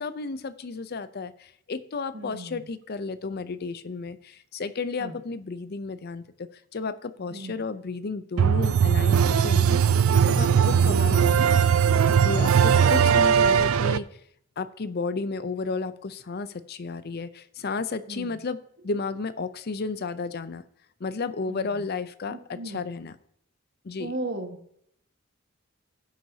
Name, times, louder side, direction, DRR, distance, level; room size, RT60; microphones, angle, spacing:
voice 1, 0.0-9.8 10.3-11.7 12.2-14.1 14.6-18.6 18.8-20.6 21.0-23.2 23.8-24.1, left 4 dB, 50° left, 14 dB, 0.5 m, -33 dB
voice 2, 2.1-2.6 5.0-5.1 7.3-7.6 10.6-11.0 18.1-18.4 21.5-21.8 22.3-22.8 24.0-24.6, right 2 dB, 55° right, 4 dB, 1.5 m, -37 dB
sound 1, 8.4-14.0, right 7 dB, 85° right, 0.4 m, -19 dB
18.5 x 6.1 x 2.8 m, 0.71 s
head